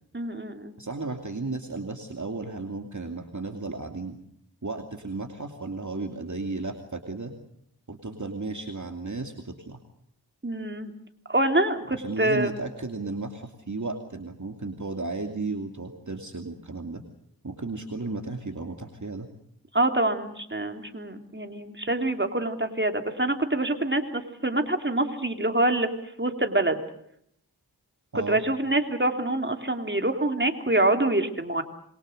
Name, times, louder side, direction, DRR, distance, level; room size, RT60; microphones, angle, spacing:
voice 1, 0.1-0.7 10.4-10.9 11.3-12.6 19.7-25.9 26.2-26.8 28.3-31.6, right 1 dB, 25° right, 5 dB, 3.2 m, -25 dB
voice 2, 0.8-4.2 4.6-7.4 7.9-9.8 11.9-17.0 17.4-19.3 28.1-28.4, right 3 dB, 45° right, 4 dB, 2.6 m, -34 dB
26.5 x 23.0 x 6.5 m, 0.71 s
cardioid pair, 45°, 40 cm